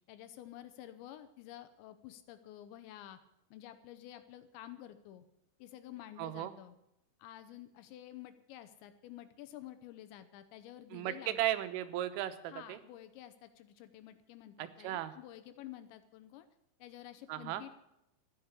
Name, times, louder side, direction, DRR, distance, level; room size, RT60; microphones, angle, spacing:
voice 1, 0.0-3.2 3.5-5.2 5.6-6.7 7.2-11.4 12.5-16.5 16.8-17.7, left 12 dB, 75° left, 11 dB, 2.9 m, -50 dB
voice 2, 6.2-6.6 10.9-12.8 14.6-15.1 17.3-17.6, right 13 dB, 85° right, 10 dB, 3.5 m, -36 dB
13.5 x 9.9 x 8.1 m, 0.81 s
omnidirectional pair, 5.6 m